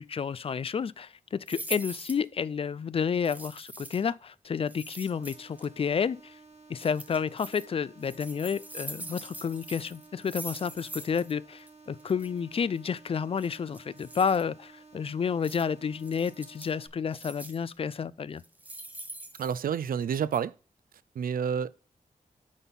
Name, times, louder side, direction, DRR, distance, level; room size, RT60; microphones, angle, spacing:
voice 1, 0.0-6.4 6.7-18.4, left 6 dB, 40° left, 0.4 m, -30 dB
sound 1, 1.5-2.3 3.2-4.1 4.7-5.7 6.8-7.7 8.0-11.3 11.6-11.7 12.0-12.3 13.4-14.4 15.4-15.6 16.0-16.7 17.1-17.7 18.4-20.0 20.3-20.4, right 1 dB, 10° right, 0.9 m, -43 dB
sound 2, 5.1-16.9, right 3 dB, 50° right, 2.1 m, -54 dB
voice 2, 19.4-20.5 21.2-21.7, right 7 dB, 85° right, 0.4 m, -29 dB
9.6 x 4.1 x 5.4 m
wide cardioid pair, 165°, 14 cm